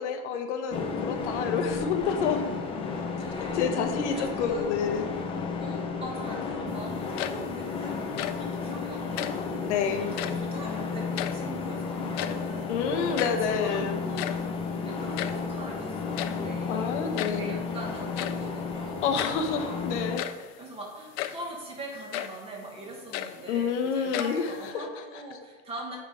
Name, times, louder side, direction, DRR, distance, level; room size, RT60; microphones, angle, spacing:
voice 1, 0.0-2.4 3.5-5.1 9.6-10.2 12.7-14.0 16.7-17.6 19.0-20.2 23.5-24.5 24.7-24.9, left 6 dB, 80° left, 6 dB, 1.0 m, -28 dB
sound 1, 0.7-20.2, left 5 dB, 15° left, 0.5 m, -33 dB
voice 2, 3.1-3.6 3.9-4.7 5.6-8.0 8.4-12.7 13.2-14.3 14.8-19.8 20.6-26.0, right 1 dB, 15° right, -1 dB, 1.4 m, -42 dB
sound 2, 7.0-7.7 8.0-8.5 9.1-9.5 10.1-10.5 10.9-11.7 12.0-12.6 12.9-13.0 13.2-13.5 14.0-15.5 16.2-16.5 17.2-17.5 18.1-18.5 19.2-19.5 20.0-20.5 21.2-21.5 22.1-22.4 22.9-23.7 24.1-24.7, left 12 dB, 60° left, 0.5 m, -35 dB
9.3 x 3.7 x 4.8 m, 1.3 s
supercardioid pair, 165°, 34 cm